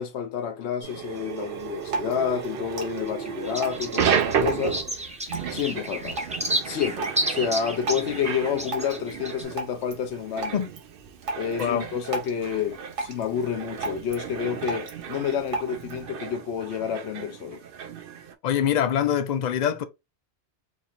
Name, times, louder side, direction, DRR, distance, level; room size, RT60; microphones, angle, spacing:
voice 1, 0.0-4.8 5.5-6.3 6.6-10.6 11.4-17.6, left 8 dB, 80° left, 1.0 m, -29 dB
sound 1, 0.8-18.3, right 8 dB, 60° right, 0.7 m, -33 dB
sound 2, 1.0-2.5 2.8-9.4, right 1 dB, 10° right, 0.4 m, -33 dB
Drip, 1.5-16.0, right 2 dB, 85° right, 1.3 m, -38 dB
voice 2, 18.4-19.8, left 9 dB, 55° left, 0.5 m, -24 dB
4.3 x 2.7 x 2.5 m
omnidirectional pair, 1.2 m